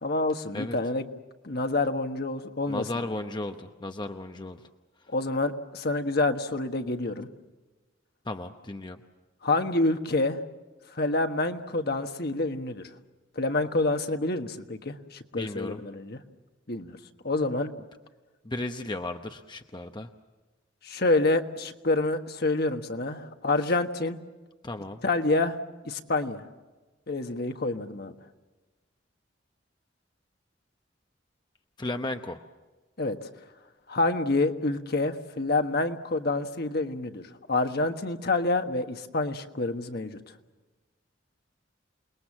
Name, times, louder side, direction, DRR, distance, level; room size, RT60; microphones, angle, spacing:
voice 1, 0.0-1.0 1.4-2.8 5.1-7.3 9.4-10.4 10.9-12.8 13.3-16.2 16.7-17.0 17.2-17.7 20.8-24.2 25.0-25.6 25.8-26.4 27.1-28.1 33.0-33.2 33.9-40.2, left 2 dB, 55° left, 6 dB, 1.4 m, -27 dB
voice 2, 2.7-4.6 8.2-9.0 15.3-15.8 18.4-20.1 24.6-25.0 31.8-32.4, left 2 dB, 25° left, 6 dB, 0.8 m, -34 dB
28.5 x 20.5 x 7.4 m, 1.2 s
head